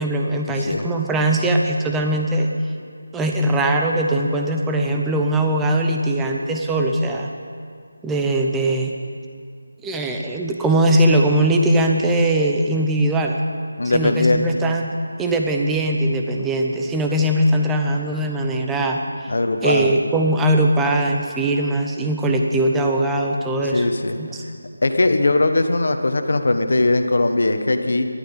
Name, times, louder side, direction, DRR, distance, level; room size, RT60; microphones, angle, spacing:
voice 1, 0.0-2.5 3.1-7.3 8.0-8.9 9.8-13.4 13.8-14.9 15.2-19.3 19.6-23.9 24.2-24.4, right 1 dB, 5° right, 1 dB, 0.6 m, -20 dB
voice 2, 13.8-14.4 19.3-19.9 23.7-24.2 24.8-28.1, left 2 dB, 65° left, 7 dB, 1.2 m, -19 dB
11.5 x 9.2 x 8.9 m, 2.2 s
figure-of-eight pair, 170°, 0 cm